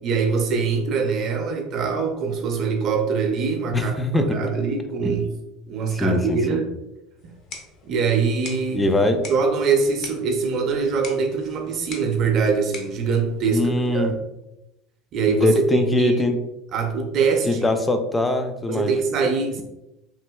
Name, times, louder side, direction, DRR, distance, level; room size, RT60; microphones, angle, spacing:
voice 1, 0.0-5.3 5.7-6.7 7.8-14.2 15.1-16.2 16.7-17.6 18.7-19.6, right 5 dB, 50° right, 4 dB, 0.6 m, -23 dB
voice 2, 3.7-4.3 5.0-5.1 5.9-6.6 8.7-9.2 13.5-14.1 15.3-16.4 17.5-18.9, left 1 dB, 15° left, 7 dB, 0.4 m, -22 dB
sound 1, 7.2-14.2, left 3 dB, 55° left, 0.6 m, -43 dB
3.1 x 2.7 x 2.2 m, 0.91 s
hypercardioid pair, 80°, 0 cm